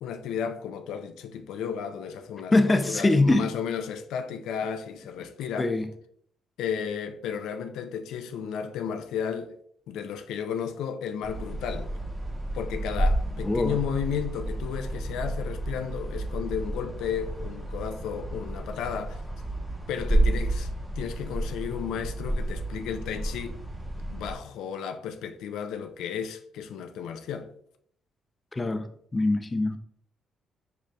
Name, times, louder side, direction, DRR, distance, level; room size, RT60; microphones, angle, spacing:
voice 1, 0.0-5.7 6.6-9.6 9.9-11.9 12.5-19.2 19.9-20.7 21.0-23.6 24.1-27.5, left 7 dB, 85° left, 0.4 m, -33 dB
voice 2, 2.5-3.5 5.6-5.9 13.4-13.8 28.5-29.8, left 2 dB, 20° left, 0.4 m, -23 dB
sound 1, 11.2-24.4, right 1 dB, 10° right, 1.2 m, -31 dB
4.9 x 4.6 x 2.3 m
cardioid pair, 90°, 0 cm